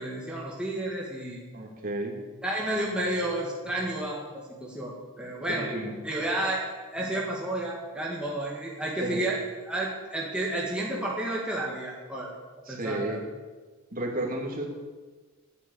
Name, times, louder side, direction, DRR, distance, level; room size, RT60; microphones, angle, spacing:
voice 1, 0.0-1.4 2.4-5.7 6.0-6.7 6.9-9.4 9.7-12.3 12.7-13.2, right 1 dB, 5° right, -4 dB, 1.9 m, -31 dB
voice 2, 1.5-2.2 5.5-6.0 9.0-9.2 12.7-13.2 13.9-14.7, right 1 dB, 45° right, -1 dB, 2.5 m, -32 dB
9.9 x 8.4 x 8.2 m, 1.4 s
head